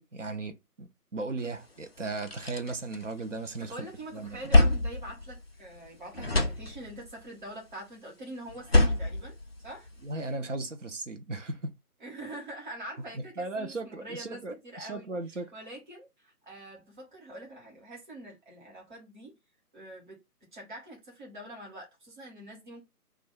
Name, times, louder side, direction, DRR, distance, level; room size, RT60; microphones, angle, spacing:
voice 1, 0.0-3.9 4.1-4.4 10.0-11.7 13.4-15.5, right 3 dB, 55° right, 0.6 m, -36 dB
sound 1, 1.5-1.6 2.0-3.6 4.0-5.9 6.1-7.2 8.5-10.1, left 2 dB, 45° left, 0.4 m, -27 dB
voice 2, 3.6-9.9 12.0-19.3 19.7-20.2 20.5-22.8, right 1 dB, 30° right, 1.2 m, -44 dB
2.4 x 2.2 x 3.6 m
figure-of-eight pair, 150°, 46 cm